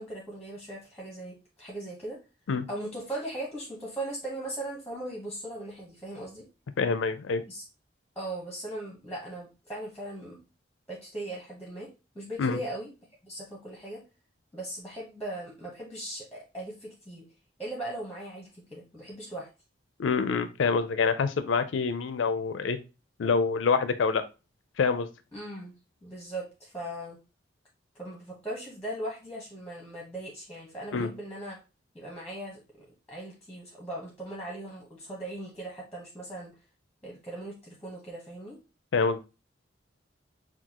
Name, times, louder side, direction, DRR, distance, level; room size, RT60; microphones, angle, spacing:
voice 1, 0.0-2.2 2.7-6.4 7.5-7.6 8.1-10.4 10.9-11.9 12.1-12.9 13.2-14.0 14.5-17.3 17.6-19.5 25.3-25.7 26.0-27.2 28.0-31.6 31.9-36.5 37.0-38.6, right 1 dB, 10° left, -3 dB, 1.0 m, -39 dB
voice 2, 6.8-7.4 12.4-12.6 20.0-22.8 23.2-24.2 24.8-25.1 30.9-31.1 38.9-39.2, left 5 dB, 90° left, 11 dB, 0.4 m, -26 dB
5.9 x 2.3 x 2.9 m, 0.29 s
head